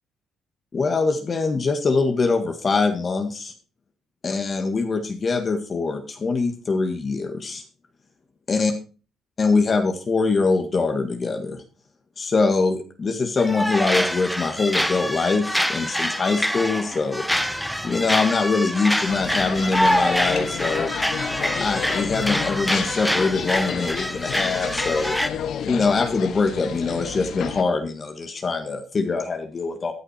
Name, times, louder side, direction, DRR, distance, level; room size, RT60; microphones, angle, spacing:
voice 1, 0.7-3.5 4.2-7.6 8.5-8.7 9.4-11.6 12.2-17.2 17.8-20.9 21.6-25.1 25.6-29.9, left 4 dB, 40° left, 5 dB, 1.8 m, -23 dB
sound 1, 13.4-25.3, equal, ahead, 1.0 m, -25 dB
sound 2, 19.1-27.6, left 8 dB, 70° left, 1.2 m, -31 dB
14.0 x 6.7 x 4.4 m, 0.36 s
cardioid pair, 90°, 0 cm